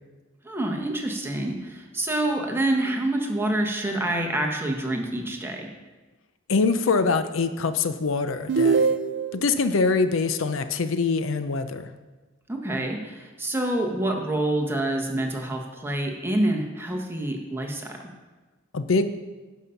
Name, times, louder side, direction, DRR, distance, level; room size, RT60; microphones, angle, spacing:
voice 1, 0.4-5.7 12.5-18.0, right 1 dB, 10° right, 1 dB, 1.2 m, -27 dB
voice 2, 6.5-9.0 9.3-11.9 18.7-19.1, left 4 dB, 75° left, 10 dB, 0.6 m, -24 dB
sound 1, 8.5-9.5, right 4 dB, 60° right, 0.4 m, -22 dB
11.0 x 5.6 x 5.7 m, 1.2 s
head